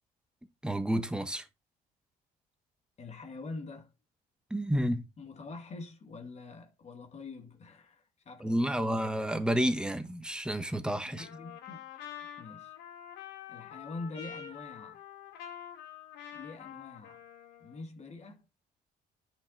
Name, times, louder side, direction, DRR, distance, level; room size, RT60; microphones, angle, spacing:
voice 1, 0.6-1.4 4.5-5.0 8.4-11.3, equal, 5° right, 1.4 m, -30 dB
voice 2, 3.0-3.9 5.2-9.1 11.0-11.8 12.4-12.7 13.5-15.0 16.3-17.2 17.6-18.4, left 3 dB, 40° left, 2.2 m, -45 dB
Trumpet, 11.2-17.8, left 9 dB, 85° left, 2.8 m, -46 dB
9.8 x 5.8 x 4.0 m
cardioid pair, 110°, 17 cm